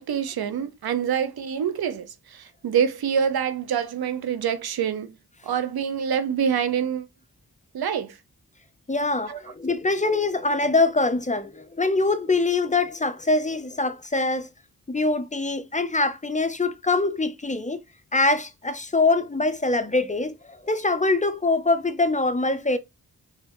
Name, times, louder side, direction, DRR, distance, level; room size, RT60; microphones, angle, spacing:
voice 1, 0.0-5.1 5.4-7.1 7.7-8.2 9.3-9.4, right 8 dB, 85° right, 0.7 m, -26 dB
voice 2, 8.9-14.5 14.9-17.8 18.1-22.8, left 3 dB, 20° left, 0.6 m, -23 dB
4.1 x 3.5 x 2.9 m
cardioid pair, 55°, 36 cm